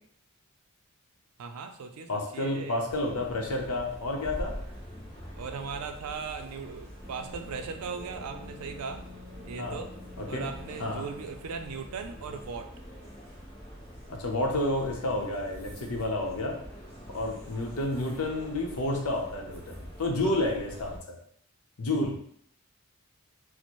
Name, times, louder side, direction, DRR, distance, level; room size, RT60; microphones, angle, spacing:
voice 1, 1.4-2.8 5.4-9.0 9.5-9.9 10.3-12.7 20.2-20.4, right 5 dB, 80° right, 7 dB, 0.4 m, -38 dB
voice 2, 2.1-4.5 9.6-9.8 10.2-10.4 10.8-11.1 14.1-16.6 17.1-21.2 21.8-22.2, left 1 dB, 75° left, 2 dB, 0.7 m, -30 dB
sound 1, 2.9-21.0, equal, 25° left, 1.2 m, -44 dB
Wind instrument woodwind instrument, 7.0-12.4, left 2 dB, 40° right, 0.7 m, -51 dB
4.2 x 2.1 x 3.0 m, 0.65 s
head